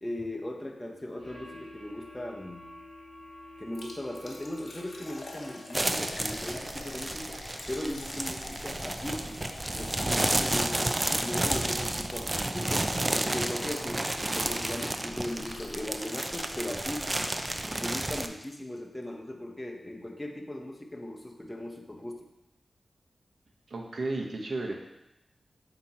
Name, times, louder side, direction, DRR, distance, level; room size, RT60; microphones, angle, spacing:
voice 1, 0.0-2.7 3.6-7.4 7.7-12.9 13.2-17.2 17.7-22.3, left 1 dB, 15° left, 1 dB, 0.8 m, -38 dB
sound 1, 1.2-6.0, left 1 dB, 45° right, 2.0 m, -48 dB
Liquid, 3.8-18.2 18.4-18.5 19.0-19.1, left 2 dB, 75° left, 0.9 m, -46 dB
sound 2, 5.7-18.3, right 1 dB, 25° right, 0.4 m, -31 dB
voice 2, 23.7-24.9, right 2 dB, 70° right, 1 dB, 0.9 m, -33 dB
7.6 x 3.0 x 4.3 m, 0.91 s
wide cardioid pair, 70°, 0 cm